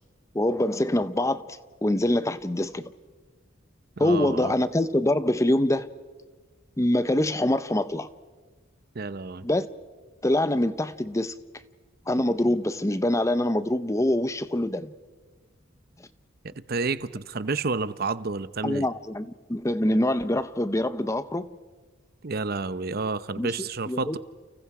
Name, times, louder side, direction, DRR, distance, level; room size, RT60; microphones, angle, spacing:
voice 1, 0.3-2.9 4.0-5.9 6.8-8.1 9.4-9.7 10.2-11.3 12.1-14.9 16.0-16.1 18.6-21.6 23.4-23.5 23.9-24.2, left 1 dB, 15° left, 0.7 m, -25 dB
voice 2, 4.0-4.5 8.9-9.4 16.7-18.9 22.2-24.2, right 4 dB, 50° right, 0.8 m, -30 dB
30.0 x 30.0 x 4.9 m
head